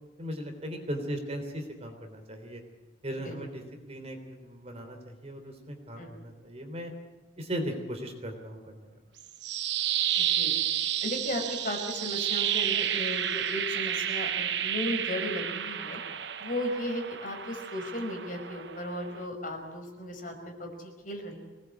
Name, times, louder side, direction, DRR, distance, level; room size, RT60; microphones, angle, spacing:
voice 1, 0.2-2.6 3.0-6.9 7.4-8.9, equal, 35° right, 5 dB, 3.6 m, -38 dB
sound 1, 9.2-19.3, right 10 dB, 65° right, 1.0 m, -31 dB
voice 2, 10.2-10.5 11.0-16.0 16.4-20.7 21.0-21.4, left 1 dB, 45° left, 3 dB, 5.0 m, -35 dB
24.5 x 19.5 x 8.4 m, 1.2 s
head